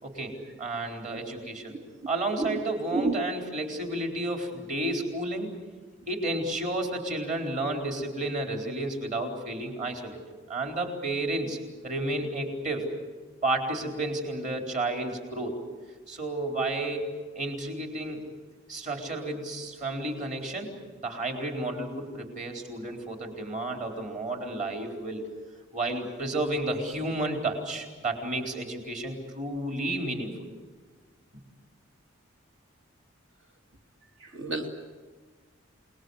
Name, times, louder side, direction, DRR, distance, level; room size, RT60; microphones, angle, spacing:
voice 1, 0.0-1.8 2.1-5.5 6.1-10.2 10.5-11.6 11.8-12.9 13.4-15.6 16.1-18.2 18.7-20.7 21.0-25.2 25.7-30.5, right 2 dB, 35° right, 2 dB, 4.2 m, -31 dB
voice 2, 34.2-34.8, right 2 dB, 60° right, 3 dB, 2.6 m, -29 dB
28.5 x 20.5 x 8.1 m, 1.4 s
head